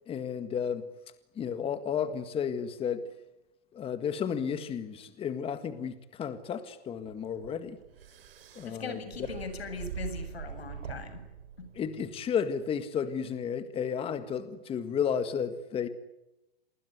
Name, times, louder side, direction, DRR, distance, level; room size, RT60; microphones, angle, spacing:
voice 1, 0.1-0.9 1.4-3.0 3.7-7.8 8.6-9.3 11.7-15.9, left 7 dB, 20° left, 11 dB, 1.8 m, -32 dB
sound 1, 7.0-12.2, right 8 dB, 70° right, 4.8 m, -43 dB
voice 2, 8.6-11.2 11.6-11.7, left 4 dB, 90° left, 10 dB, 7.4 m, -40 dB
28.0 x 21.0 x 9.6 m, 0.90 s
hypercardioid pair, 135°, 30 cm